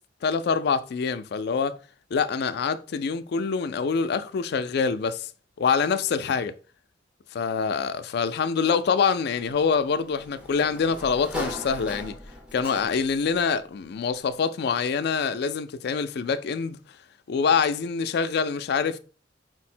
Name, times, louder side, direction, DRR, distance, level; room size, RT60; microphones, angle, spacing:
voice 1, 0.2-1.8 2.1-5.3 5.6-6.5 7.3-12.2 12.5-16.8 17.3-19.0, left 5 dB, 60° left, 0.3 m, -25 dB
Sliding door, 9.3-13.3, left 2 dB, 5° right, 0.7 m, -38 dB
4.5 x 2.1 x 4.2 m
head